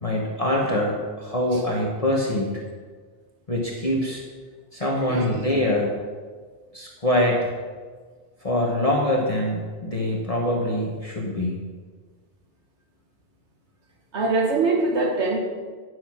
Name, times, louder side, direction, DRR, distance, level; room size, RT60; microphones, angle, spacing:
voice 1, 0.0-2.6 3.5-4.2 4.7-6.0 6.7-7.5 8.4-11.6, left 1 dB, 35° left, -2 dB, 1.3 m, -24 dB
voice 2, 4.8-5.3 14.1-15.4, right 3 dB, 90° right, 1 dB, 1.6 m, -23 dB
10.5 x 6.3 x 6.1 m, 1.5 s
omnidirectional pair, 1.1 m